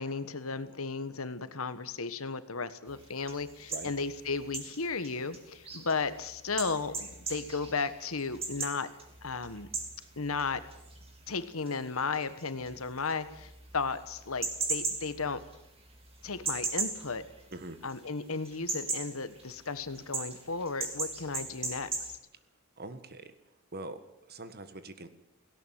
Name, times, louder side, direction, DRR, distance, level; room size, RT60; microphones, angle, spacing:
voice 1, 0.0-8.9 9.2-9.7 10.2-10.6 11.3-15.4 16.2-17.2 17.8-22.2, left 4 dB, 70° left, 12 dB, 1.4 m, -34 dB
sound 1, 2.9-18.1 18.3-22.1, right 4 dB, 25° right, 3.4 m, -38 dB
voice 2, 17.5-17.8 22.8-23.4 23.7-25.1, right 2 dB, 45° right, 11 dB, 1.7 m, -43 dB
17.5 x 17.5 x 9.4 m, 0.85 s
head